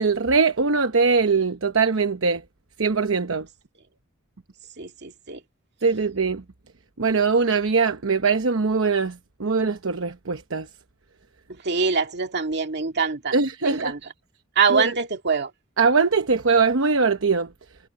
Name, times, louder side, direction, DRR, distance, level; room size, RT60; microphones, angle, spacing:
voice 1, 0.0-2.4 2.8-3.5 5.8-6.4 7.0-10.7 13.3-13.9 14.7-14.9 15.8-17.5, right 4 dB, 70° right, 0.9 m, -21 dB
voice 2, 4.8-5.4 11.6-13.3 13.6-14.0 14.6-15.5, right 5 dB, 55° right, 2.1 m, -24 dB
head